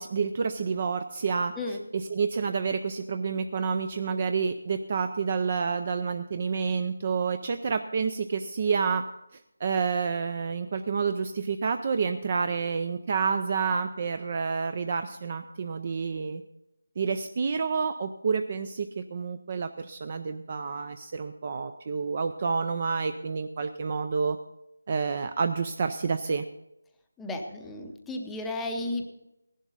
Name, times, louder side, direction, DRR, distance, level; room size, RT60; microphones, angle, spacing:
voice 1, 0.0-9.0 9.6-16.4 17.0-24.4 24.9-26.4, right 5 dB, 30° right, 9 dB, 0.4 m, -29 dB
voice 2, 27.2-29.1, left 2 dB, 5° left, 2 dB, 0.7 m, -33 dB
15.5 x 11.0 x 4.0 m, 0.88 s
figure-of-eight pair, 175°, 0 cm